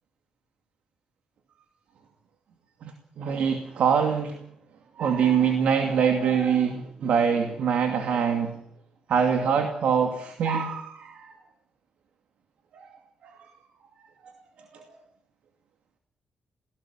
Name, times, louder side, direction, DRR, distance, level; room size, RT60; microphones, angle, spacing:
voice 1, 3.2-4.4 5.0-8.6 9.1-11.3 12.7-12.8 14.7-14.8, right 7 dB, 75° right, 5 dB, 2.6 m, -24 dB
28.5 x 18.0 x 7.4 m, 0.71 s
wide cardioid pair, 145°, 2 cm